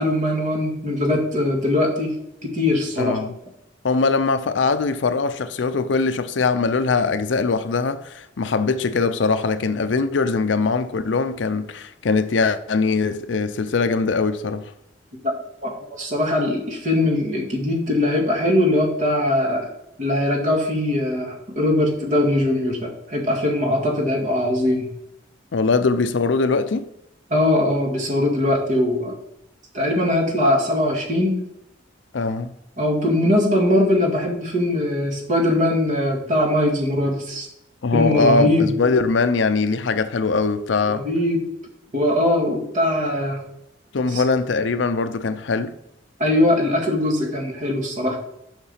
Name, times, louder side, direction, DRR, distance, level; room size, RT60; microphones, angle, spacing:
voice 1, 0.0-3.2 15.2-15.3 15.6-19.7 20.0-24.9 27.3-29.1 29.7-31.4 32.8-37.5 37.9-38.7 40.9-41.4 41.9-43.4 44.1-44.2 46.2-48.2, left 1 dB, 40° right, 2.0 m, -21 dB
voice 2, 3.0-3.3 3.8-14.7 25.5-26.9 32.1-32.5 37.8-41.1 43.9-45.7, left 4 dB, 70° left, 0.5 m, -21 dB
7.1 x 5.9 x 5.6 m
head